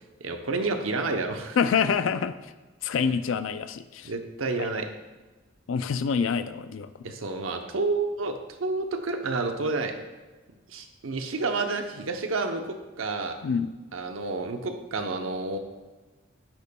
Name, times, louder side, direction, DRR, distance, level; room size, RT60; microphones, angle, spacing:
voice 1, 0.2-1.6 4.0-4.9 7.0-8.3 8.6-9.9 10.7-13.3 13.9-15.6, right 3 dB, 80° right, 5 dB, 0.8 m, -29 dB
voice 2, 1.6-2.5 2.8-4.1 4.6-4.7 5.7-6.9 13.4-13.7, left 6 dB, 75° left, 12 dB, 0.4 m, -26 dB
9.9 x 6.8 x 2.2 m, 1.2 s
head